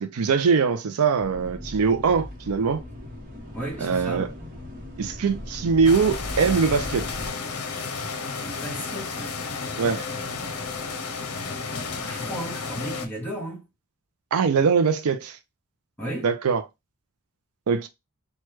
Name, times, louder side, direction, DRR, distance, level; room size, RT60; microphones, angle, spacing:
voice 1, 0.0-2.8 3.8-4.3 5.0-7.1 9.8-10.1 14.3-15.4 16.2-16.6 17.7-17.9, right 5 dB, 80° right, 0.4 m, -22 dB
sound 1, 1.2-7.3, left 1 dB, 40° right, 0.9 m, -38 dB
voice 2, 3.5-4.2 8.4-9.4 11.9-13.6 16.0-16.3, right 1 dB, 10° left, 1.2 m, -34 dB
sound 2, 5.8-13.1, left 4 dB, 85° left, 0.6 m, -32 dB
3.1 x 2.2 x 3.2 m
head